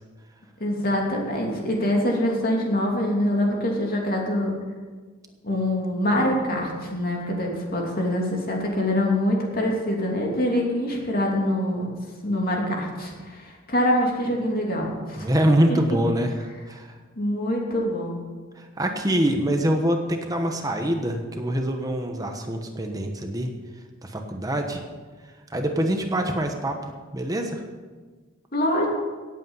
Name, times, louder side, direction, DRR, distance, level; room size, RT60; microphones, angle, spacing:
voice 1, 0.6-4.5 5.4-11.9 12.2-15.3 15.7-16.0 17.2-18.2 28.5-28.9, left 1 dB, 45° left, -1 dB, 2.8 m, -24 dB
voice 2, 15.2-17.0 18.6-23.5 24.0-24.8 25.5-26.8 27.1-27.6, right 1 dB, 15° right, 4 dB, 1.1 m, -24 dB
17.0 x 8.4 x 5.6 m, 1.4 s
head